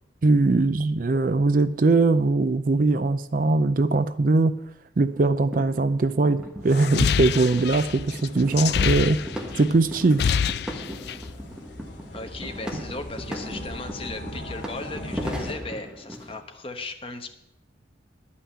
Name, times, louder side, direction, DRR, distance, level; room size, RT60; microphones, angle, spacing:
voice 1, 0.2-4.5 5.0-9.2 9.6-10.2, right 3 dB, 45° right, 12 dB, 0.4 m, -21 dB
sound 1, 5.0-16.4, equal, 5° right, 1.3 m, -38 dB
sound 2, 6.7-9.6 9.9-11.3, left 7 dB, 55° left, 0.3 m, -26 dB
sound 3, 7.1-15.5, left 1 dB, 75° left, 2.3 m, -40 dB
voice 2, 12.1-17.3, left 2 dB, 30° left, 5 dB, 1.0 m, -37 dB
11.0 x 5.7 x 8.5 m, 0.88 s
head